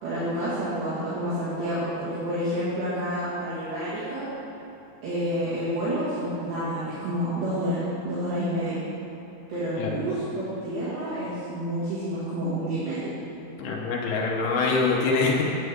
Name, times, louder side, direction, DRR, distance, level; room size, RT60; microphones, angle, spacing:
voice 1, 0.0-4.3 5.0-8.8 9.5-13.1, equal, 65° right, -13 dB, 3.7 m, -29 dB
voice 2, 13.6-15.4, left 4 dB, 85° left, -2 dB, 2.2 m, -24 dB
10.0 x 7.8 x 3.5 m, 3.0 s
omnidirectional pair, 5.5 m